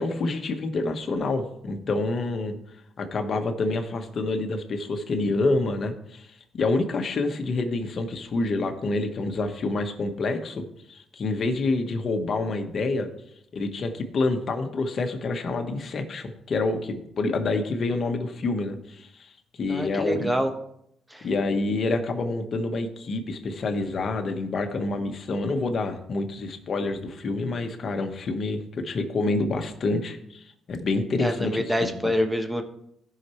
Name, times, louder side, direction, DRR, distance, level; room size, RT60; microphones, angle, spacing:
voice 1, 0.0-2.5 3.0-13.1 13.5-19.3 19.6-20.4 21.2-32.1, left 3 dB, 50° left, 6 dB, 1.3 m, -27 dB
voice 2, 19.7-20.5 21.1-21.3 31.2-32.6, equal, 5° right, 5 dB, 1.3 m, -26 dB
15.5 x 5.9 x 3.2 m, 0.75 s
cardioid pair, 90°, 0 cm